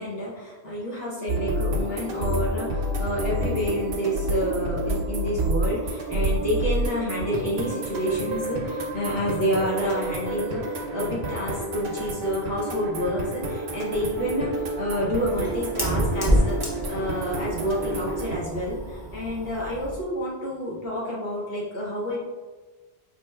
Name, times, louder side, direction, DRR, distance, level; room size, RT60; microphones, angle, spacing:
voice 1, 0.0-22.2, equal, 65° left, -5 dB, 1.0 m, -29 dB
sound 1, 1.3-18.4, right 1 dB, 75° right, 0.9 m, -29 dB
Fire, 13.9-20.0, equal, 25° left, 0.7 m, -29 dB
4.4 x 3.2 x 2.2 m, 1.3 s
omnidirectional pair, 1.1 m